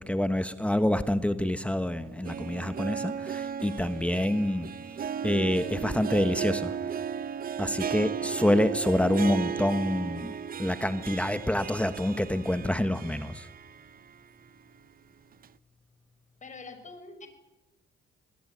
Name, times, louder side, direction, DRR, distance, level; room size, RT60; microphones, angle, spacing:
voice 1, 0.0-4.7 5.2-6.7 7.6-13.5, left 1 dB, 5° left, 10 dB, 1.4 m, -27 dB
Harp, 2.0-14.1 14.5-14.6 15.4-15.5, right 7 dB, 45° right, 0.8 m, -35 dB
voice 2, 16.4-17.3, left 3 dB, 40° left, 8 dB, 6.2 m, -44 dB
25.5 x 20.5 x 9.4 m, 0.99 s
cardioid pair, 90°, 20 cm